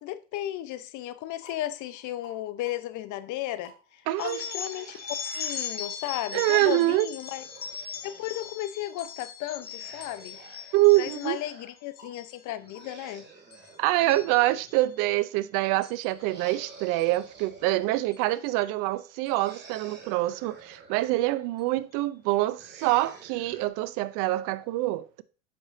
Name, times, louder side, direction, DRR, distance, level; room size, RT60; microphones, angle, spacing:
voice 1, 0.0-3.7 4.2-5.0 5.3-7.4 8.0-10.4 11.0-13.2, left 14 dB, 50° left, 0.7 m, -34 dB
sound 1, 1.1-14.5, left 2 dB, 90° left, 2.8 m, -59 dB
voice 2, 4.1-4.9 6.3-7.1 10.7-11.4 13.8-25.2, right 18 dB, 60° right, 0.6 m, -25 dB
sound 2, 4.2-11.5 12.0-12.4 12.7-13.1 13.5-14.9 15.8-16.1 17.0-17.2 18.1-18.2 18.6-18.7 19.3-19.5, left 7 dB, 25° left, 0.9 m, -39 dB
sound 3, 4.3-8.5 9.5-11.7 12.6-15.0 16.1-18.3 19.3-21.5 22.5-23.7, right 4 dB, 30° right, 2.3 m, -50 dB
7.7 x 6.0 x 2.6 m
hypercardioid pair, 80°, 37 cm